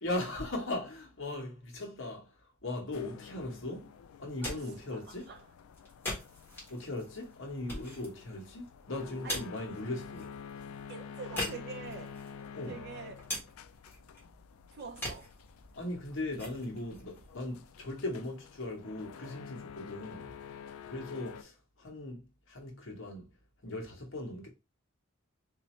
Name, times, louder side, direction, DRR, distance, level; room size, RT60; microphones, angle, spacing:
voice 1, 0.0-5.3 6.7-10.4 12.5-12.8 15.7-20.3 20.9-23.3 23.6-24.5, left 2 dB, 65° left, 1.1 m, -39 dB
sound 1, 2.9-21.4, left 7 dB, 85° left, 0.3 m, -49 dB
sound 2, 4.2-18.1, left 1 dB, 10° left, 1.5 m, -44 dB
voice 2, 4.4-5.4 9.2-9.4 10.9-12.2 12.7-13.1 14.7-15.3, right 4 dB, 50° right, 0.6 m, -45 dB
4.0 x 2.7 x 3.0 m
head